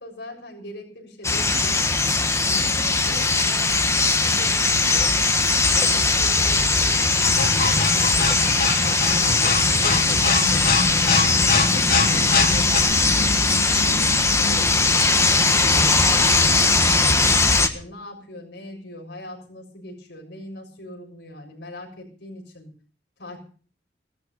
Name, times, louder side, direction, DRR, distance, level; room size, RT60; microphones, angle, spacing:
voice 1, 0.0-2.1 2.4-5.2 5.7-13.9 14.4-17.2 17.7-22.7 23.2-23.4, left 1 dB, 75° left, 1 dB, 6.8 m, -41 dB
sound 1, 1.2-17.7, left 3 dB, 15° left, 1.5 m, -20 dB
sound 2, 5.7-15.8, left 2 dB, 10° right, 5.5 m, -33 dB
sound 3, 7.2-12.8, left 4 dB, 55° left, 2.8 m, -24 dB
17.5 x 13.5 x 5.5 m, 0.41 s
head